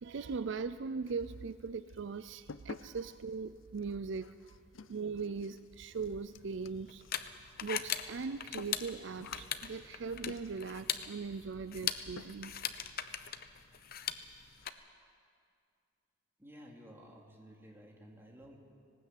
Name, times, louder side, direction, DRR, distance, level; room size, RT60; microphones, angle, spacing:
voice 1, 0.0-4.6 4.9-7.0 7.6-12.5, right 5 dB, 65° right, 13 dB, 0.5 m, -40 dB
sound 1, 1.0-1.6 1.9-10.8 11.7-11.9 12.2-12.6 12.9-13.0 13.4-13.5 13.8-13.9 14.3-14.7, left 4 dB, 90° left, 0.6 m, -52 dB
sound 2, 6.0-14.7, left 9 dB, 50° left, 0.9 m, -40 dB
voice 2, 16.4-18.6, equal, 10° right, -1 dB, 3.0 m, -54 dB
19.0 x 18.5 x 8.5 m, 2.3 s
head